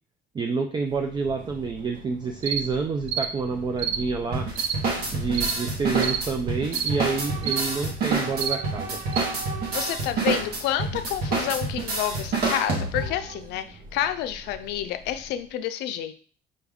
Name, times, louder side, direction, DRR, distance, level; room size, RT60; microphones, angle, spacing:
voice 1, 0.3-4.5 5.1-9.0, right 4 dB, 25° right, 4 dB, 0.3 m, -28 dB
Train / Subway metro underground, 0.7-15.6, right 3 dB, 55° right, 0.8 m, -41 dB
sound 1, 2.4-2.6 3.1-3.3 3.8-4.0 4.6-4.8 5.3-5.5 6.0-6.2 6.7-6.9 7.4-7.6 8.4-8.6 9.1-9.2, right 8 dB, 90° right, 0.5 m, -27 dB
sound 2, 4.3-13.2, right 3 dB, 70° right, 1.1 m, -28 dB
voice 2, 9.7-16.1, left 11 dB, 90° left, 9 dB, 0.5 m, -29 dB
5.1 x 2.4 x 3.4 m, 0.41 s
cardioid pair, 110°, 17 cm